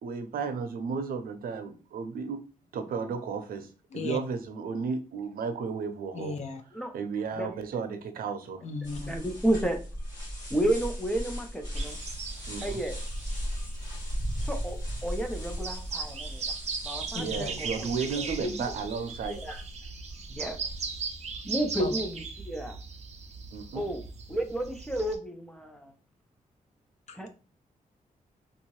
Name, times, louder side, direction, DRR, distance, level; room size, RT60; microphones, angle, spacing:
voice 1, 0.0-2.4 2.7-6.4 6.9-8.6 12.5-12.8 17.2-19.4 23.5-23.8, right 5 dB, 90° right, 8 dB, 0.6 m, -33 dB
voice 2, 6.1-6.6 8.6-9.1 17.1-17.5 21.8-21.9 27.1-27.3, left 4 dB, 50° left, 5 dB, 0.6 m, -35 dB
sound 1, 8.8-21.4, equal, 30° left, 1.8 m, -37 dB
voice 3, 9.0-9.8 10.5-12.0 12.6-13.0 14.4-16.4 16.8-17.9 18.2-18.5 19.3-19.6 20.3-20.6 21.4-22.8 23.7-24.0 24.3-25.9 27.1-27.3, right 1 dB, 5° left, 4 dB, 0.5 m, -31 dB
sound 2, 11.7-25.2, right 4 dB, 45° right, 0.6 m, -39 dB
3.4 x 2.7 x 3.1 m, 0.35 s
wide cardioid pair, 165°, 15 cm